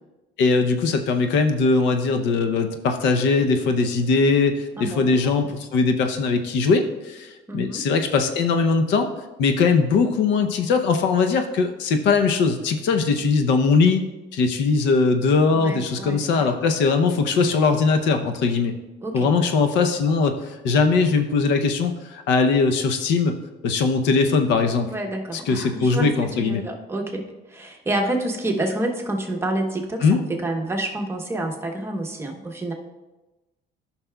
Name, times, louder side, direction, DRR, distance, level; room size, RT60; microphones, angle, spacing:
voice 1, 0.4-9.1 9.4-14.0 14.3-18.7 19.1-23.3 23.6-24.9 25.5-26.6 30.0-30.2, left 4 dB, 75° left, 6 dB, 0.7 m, -20 dB
voice 2, 4.8-5.5 7.5-7.8 15.5-16.5 19.0-19.3 24.8-26.1 26.4-32.7, right 1 dB, 15° right, 1 dB, 1.0 m, -28 dB
13.5 x 5.8 x 2.3 m, 1.1 s
cardioid pair, 140°, 19 cm